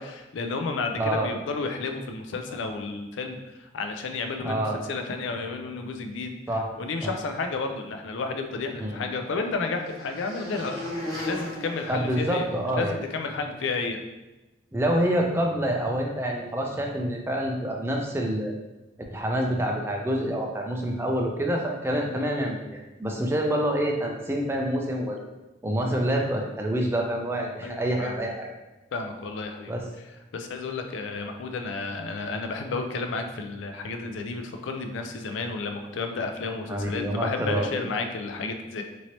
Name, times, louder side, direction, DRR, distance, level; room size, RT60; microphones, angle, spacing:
voice 1, 0.0-6.3 6.7-10.8 11.1-12.5 12.8-14.0 27.6-28.2 28.9-29.7 30.3-38.8, left 3 dB, 85° left, 5 dB, 0.4 m, -32 dB
voice 2, 1.0-1.3 4.4-4.8 6.5-6.7 7.0-7.1 8.8-9.0 11.9-12.9 14.7-18.6 19.1-25.2 25.6-28.5 29.7-29.8 36.7-37.8, right 1 dB, 15° right, 0 dB, 0.3 m, -27 dB
sound 1, 8.2-12.9, left 1 dB, 50° left, 1.5 m, -38 dB
2.9 x 2.7 x 2.9 m, 1.1 s
head